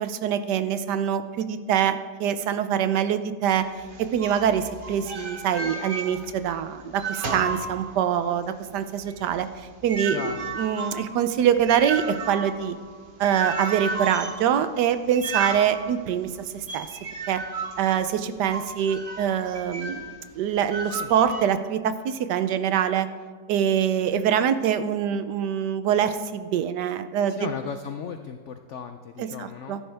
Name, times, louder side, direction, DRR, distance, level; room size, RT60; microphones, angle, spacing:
voice 1, 0.0-3.6 4.1-9.5 9.8-12.8 13.2-16.3 16.5-16.9 17.3-17.4 17.8-20.1 20.3-23.1 23.5-27.4 29.2-29.8, right 9 dB, 75° right, 11 dB, 1.2 m, -24 dB
sound 1, 3.5-6.6 6.8-8.3 8.6-20.2 20.7-21.5, right 4 dB, 35° right, 1.0 m, -34 dB
voice 2, 10.1-10.5 20.8-21.1 27.3-29.8, left 7 dB, 75° left, 7 dB, 0.6 m, -36 dB
13.0 x 11.0 x 3.4 m, 1.5 s
omnidirectional pair, 1.9 m